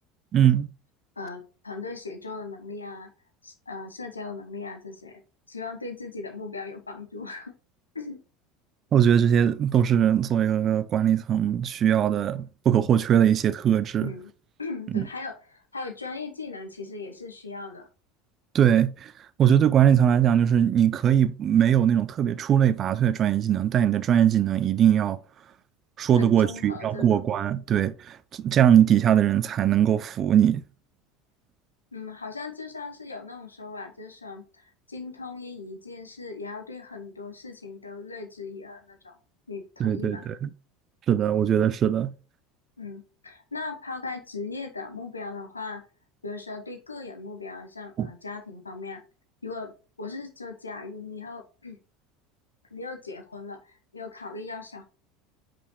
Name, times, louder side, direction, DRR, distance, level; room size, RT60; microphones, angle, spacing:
voice 1, 0.3-0.7 8.9-14.1 14.9-15.0 18.5-19.1 19.4-25.2 26.0-30.6 39.8-40.5 41.1-42.1 48.0-48.1, right 9 dB, 40° right, 0.5 m, -21 dB
voice 2, 1.2-3.1 3.4-5.2 5.5-7.5 7.9-8.2 14.0-14.3 14.6-17.9 26.1-27.3 31.9-39.2 39.5-40.3 42.8-45.8 46.2-49.0 49.4-49.7 50.0-51.8 52.7-54.8, left 4 dB, 85° left, 1.0 m, -38 dB
5.2 x 4.4 x 4.4 m
figure-of-eight pair, 75°, 0 cm